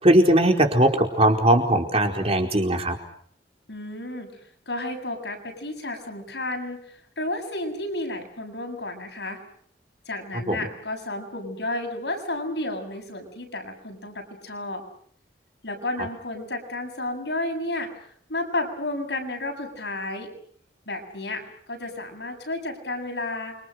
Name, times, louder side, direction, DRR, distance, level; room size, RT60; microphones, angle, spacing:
voice 1, 0.0-2.9 10.5-10.6, right 1 dB, 35° right, 3 dB, 4.7 m, -19 dB
voice 2, 3.7-4.4 4.7-9.4 10.1-14.8 15.6-17.9 18.3-20.3 20.9-23.6, left 2 dB, 70° left, 4 dB, 7.6 m, -32 dB
29.0 x 26.0 x 6.6 m, 0.62 s
head